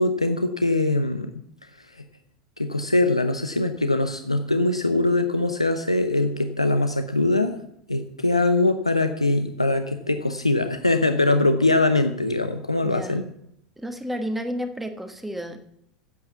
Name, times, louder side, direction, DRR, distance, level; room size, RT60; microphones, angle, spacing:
voice 1, 0.0-1.3 2.0-2.1 2.6-7.6 7.9-13.2, left 2 dB, 90° left, 8 dB, 0.7 m, -22 dB
voice 2, 12.8-13.2 13.8-15.7, equal, 5° right, 6 dB, 1.4 m, -31 dB
9.4 x 7.8 x 7.0 m, 0.73 s
figure-of-eight pair, 80°, 3 cm